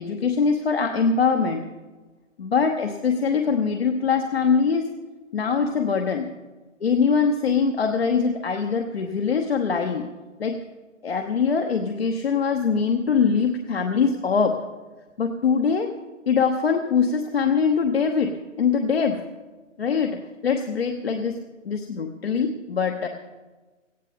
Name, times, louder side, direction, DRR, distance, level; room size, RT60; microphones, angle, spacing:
voice 1, 0.0-1.6 2.4-4.9 5.3-6.3 6.8-10.1 10.4-10.6 11.0-14.6 15.2-15.9 16.3-19.2 19.8-21.4 21.6-23.1, left 5 dB, 50° left, 4 dB, 1.1 m, -23 dB
18.0 x 14.5 x 3.6 m, 1.2 s
figure-of-eight pair, 135°, 38 cm